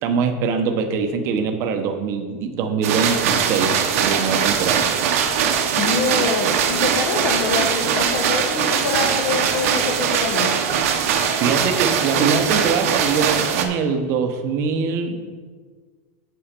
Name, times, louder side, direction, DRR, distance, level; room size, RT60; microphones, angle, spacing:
voice 1, 0.0-4.9 11.2-15.4, right 5 dB, 35° right, 6 dB, 0.8 m, -23 dB
sound 1, 2.8-13.6, right 7 dB, 65° right, 0.9 m, -21 dB
voice 2, 5.8-10.6, left 4 dB, 50° left, 0 dB, 1.1 m, -25 dB
7.1 x 6.3 x 5.2 m, 1.5 s
supercardioid pair, 170°, 9 cm